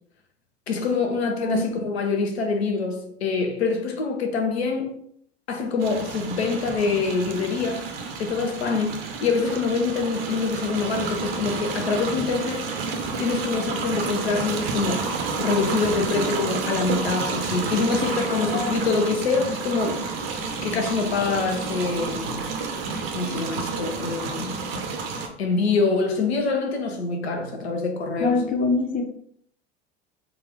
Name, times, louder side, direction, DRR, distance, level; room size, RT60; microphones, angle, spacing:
voice 1, 0.7-5.0 5.5-7.9 8.2-12.7 13.2-20.0 20.6-22.5 23.1-24.6 25.4-28.5, left 4 dB, 75° left, 0.7 m, -25 dB
voice 2, 1.4-1.7 18.3-18.8 28.2-29.0, left 4 dB, 25° left, 0.7 m, -24 dB
sound 1, 5.8-25.3, right 4 dB, 60° right, 0.7 m, -30 dB
3.7 x 2.4 x 3.2 m
figure-of-eight pair, 75°, 32 cm